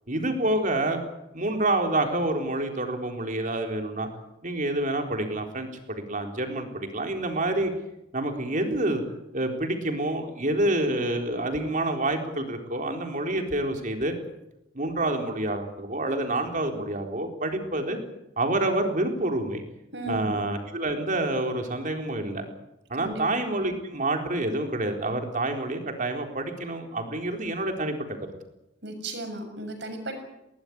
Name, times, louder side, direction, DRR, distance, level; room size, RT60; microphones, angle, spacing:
voice 1, 0.1-1.0 1.3-4.1 4.4-7.7 8.1-9.0 9.3-14.1 14.7-18.0 18.4-19.6 20.1-22.5 22.9-28.2, right 1 dB, 40° right, 4 dB, 4.0 m, -28 dB
voice 2, 19.9-20.4 23.0-23.2 28.8-30.1, right 2 dB, 60° right, 5 dB, 7.1 m, -35 dB
21.0 x 19.0 x 9.5 m, 0.88 s
head